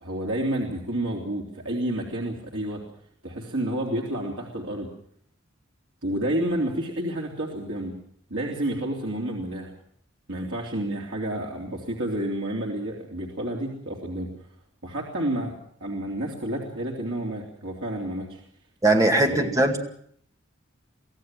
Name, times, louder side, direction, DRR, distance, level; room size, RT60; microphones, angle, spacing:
voice 1, 0.0-2.8 3.2-4.9 6.0-7.9 8.3-9.7 10.3-14.3 14.8-15.5 15.8-18.4 19.3-19.5, right 1 dB, 75° right, -1 dB, 3.3 m, -30 dB
voice 2, 18.8-19.8, right 2 dB, 15° right, 4 dB, 2.3 m, -20 dB
24.5 x 16.0 x 7.7 m, 0.64 s
head